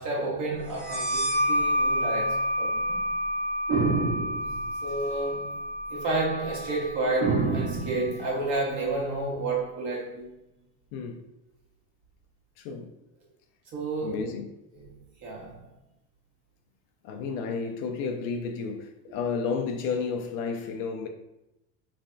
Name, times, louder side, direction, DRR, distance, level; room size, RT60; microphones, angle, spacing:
voice 1, 0.0-3.1 3.7-5.6 5.9-10.3 13.7-14.3 15.2-15.6, right 3 dB, 50° right, 1.4 m, -29 dB
sound 1, 0.8-8.1, equal, 25° right, 0.8 m, -29 dB
voice 2, 10.9-11.3 12.6-12.9 14.0-14.5 17.0-21.1, left 5 dB, 60° left, 0.6 m, -32 dB
3.4 x 3.2 x 2.6 m
supercardioid pair, 130°, 38 cm